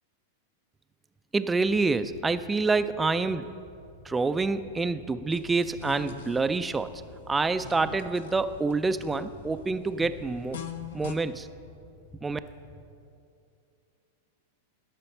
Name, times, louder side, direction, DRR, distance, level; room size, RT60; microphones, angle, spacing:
voice 1, 1.3-3.5 4.1-6.9 7.3-10.6 10.9-11.5 12.2-12.4, right 3 dB, 15° right, 11 dB, 0.3 m, -27 dB
sound 1, 1.6-12.9, left 3 dB, 50° left, 1.9 m, -52 dB
sound 2, 5.3-11.1, left 8 dB, 70° left, 0.7 m, -44 dB
12.0 x 5.7 x 6.6 m, 2.5 s
figure-of-eight pair, 95°, 0 cm